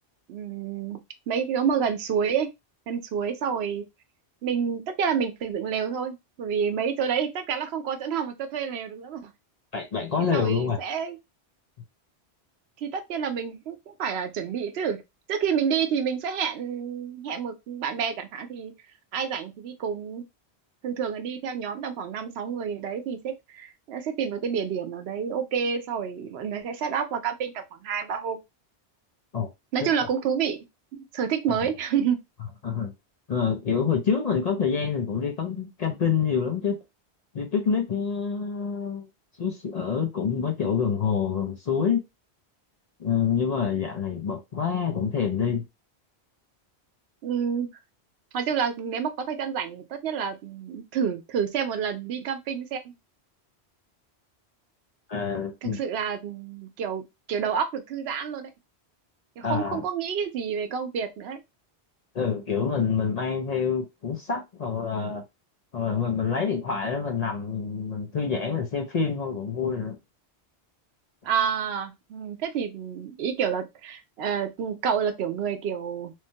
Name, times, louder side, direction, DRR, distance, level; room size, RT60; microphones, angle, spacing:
voice 1, 0.3-1.0 1.3-2.5 2.9-3.8 4.4-9.3 10.3-11.2 12.8-15.0 15.3-18.7 19.1-20.2 20.8-28.4 29.7-30.6 30.9-32.2 47.2-47.7 48.3-52.9 55.6-57.0 57.3-58.5 59.4-61.4 71.2-76.1, right 7 dB, 75° right, 0.8 m, -29 dB
voice 2, 9.7-10.8 29.3-29.5 29.8-29.9 32.6-32.9 33.3-36.8 37.3-39.1 39.4-42.0 43.0-45.6 55.1-55.8 59.4-59.8 62.1-65.2 65.7-70.0, left 6 dB, 45° left, 0.6 m, -27 dB
3.1 x 2.1 x 2.7 m
omnidirectional pair, 1.1 m